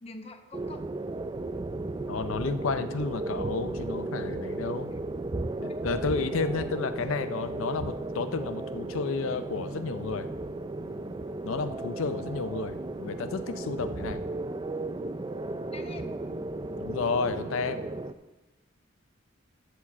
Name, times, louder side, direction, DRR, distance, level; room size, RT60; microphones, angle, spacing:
voice 1, 0.0-0.9 4.9-5.0 5.7-5.8 15.7-16.2, left 2 dB, 30° left, 6 dB, 0.9 m, -45 dB
sound 1, 0.5-18.1, right 2 dB, 20° right, 0.4 m, -35 dB
voice 2, 2.1-4.9 5.6-10.3 11.4-14.2 16.8-17.9, left 4 dB, 80° left, 10 dB, 0.5 m, -32 dB
12.5 x 5.0 x 7.0 m, 1.1 s
head